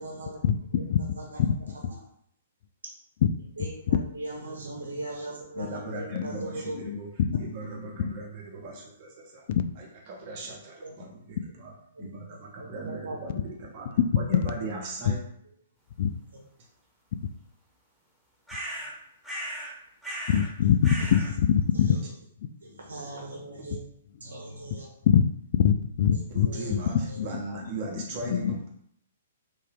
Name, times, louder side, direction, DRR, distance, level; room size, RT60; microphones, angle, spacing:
voice 1, 0.0-0.4 0.7-1.4 1.9-2.0 3.6-6.8 10.8-10.9 11.9-12.2 12.6-13.2 16.3-16.4 21.0-21.1 21.7-22.0 22.6-23.8 24.2-24.9 26.1-26.7 27.1-27.6, right 2 dB, 70° right, -1 dB, 1.0 m, -39 dB
voice 2, 5.6-7.1 7.4-9.5 9.8-15.2 23.6-23.7 26.3-28.7, right 2 dB, 40° right, -1 dB, 1.1 m, -39 dB
sound 1, 18.5-18.9 19.2-19.7 20.0-20.5 20.8-21.3, equal, ahead, 1.2 m, -36 dB
voice 3, 20.3-21.9 25.1-25.2 25.5-26.5 27.2-27.3 28.3-28.5, left 8 dB, 50° left, 11 dB, 0.3 m, -23 dB
3.5 x 2.8 x 3.4 m, 0.68 s
figure-of-eight pair, 115°, 0 cm